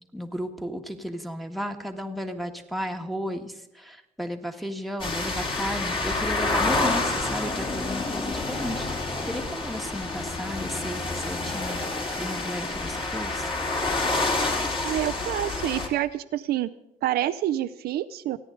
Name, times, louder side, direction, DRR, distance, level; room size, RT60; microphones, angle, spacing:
voice 1, 0.1-11.8 12.2-13.5, equal, ahead, 3 dB, 1.6 m, -34 dB
sound 1, 5.0-15.9, left 3 dB, 30° left, 2.8 m, -28 dB
voice 2, 14.8-16.7 17.0-18.4, right 13 dB, 70° right, 10 dB, 0.6 m, -27 dB
29.0 x 9.9 x 3.9 m, 0.86 s
cardioid pair, 110°, 17 cm